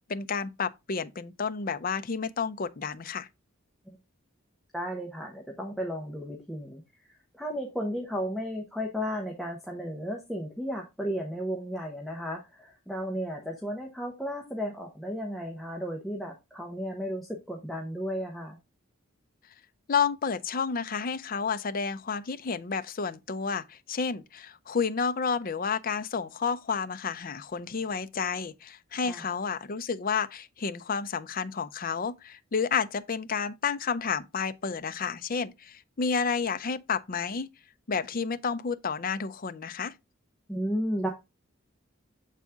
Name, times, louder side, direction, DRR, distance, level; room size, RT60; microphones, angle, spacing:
voice 1, 0.1-3.3 19.9-37.5 37.9-39.9, left 5 dB, 45° left, 0.5 m, -30 dB
voice 2, 4.7-6.8 7.3-18.6 29.0-29.3 40.5-41.1, equal, ahead, 1.1 m, -34 dB
7.2 x 4.1 x 3.5 m
head